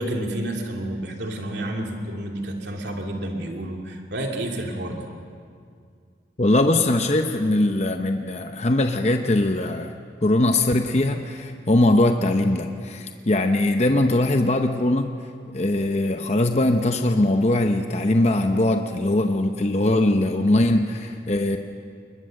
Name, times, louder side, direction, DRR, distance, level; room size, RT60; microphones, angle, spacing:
voice 1, 0.0-5.1, right 1 dB, 70° right, 1 dB, 2.8 m, -30 dB
voice 2, 6.4-9.9 10.2-15.1 15.5-21.6, left 1 dB, 35° left, 5 dB, 0.8 m, -21 dB
21.5 x 21.0 x 6.5 m, 2.2 s
head